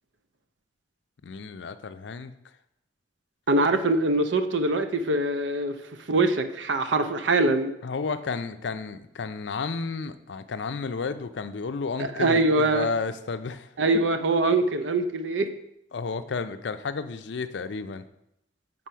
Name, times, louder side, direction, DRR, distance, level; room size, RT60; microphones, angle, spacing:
voice 1, 1.2-2.3 7.8-13.7 15.9-18.0, left 4 dB, 70° left, 11 dB, 0.5 m, -32 dB
voice 2, 3.5-5.8 6.1-7.7 12.0-12.9 13.8-15.5, right 2 dB, 80° right, 8 dB, 0.6 m, -23 dB
7.5 x 4.0 x 5.6 m, 0.81 s
head